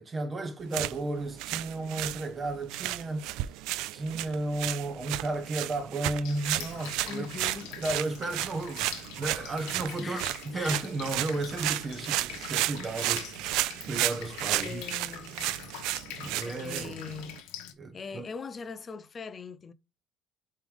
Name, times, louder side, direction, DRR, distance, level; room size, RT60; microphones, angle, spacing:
voice 1, 0.0-3.3 3.9-7.3 7.8-10.2 10.5-13.3 13.9-14.8 16.2-16.9 17.7-18.3, right 2 dB, 25° right, 1.2 m, -33 dB
sound 1, 0.6-17.4, right 16 dB, 80° right, 0.4 m, -34 dB
Drip, 6.2-17.7, left 10 dB, 90° left, 1.2 m, -44 dB
voice 2, 7.1-7.8 10.0-10.8 13.4-13.6 14.5-15.5 16.4-17.4 17.9-19.7, left 5 dB, 30° left, 0.6 m, -41 dB
9.2 x 3.4 x 3.5 m
cardioid pair, 125°, 0 cm